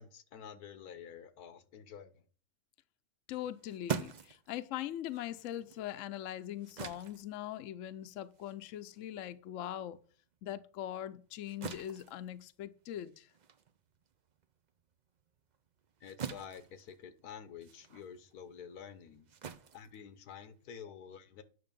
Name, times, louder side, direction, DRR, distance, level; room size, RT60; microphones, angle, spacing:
voice 1, 0.0-2.2 16.0-19.3 19.7-21.4, left 7 dB, 85° left, 1.4 m, -49 dB
voice 2, 3.3-10.0 10.4-13.3, left 12 dB, 65° left, 0.9 m, -41 dB
sound 1, 3.3-10.1 10.5-20.7, right 7 dB, 60° right, 0.4 m, -46 dB
9.5 x 6.2 x 5.3 m
omnidirectional pair, 1.6 m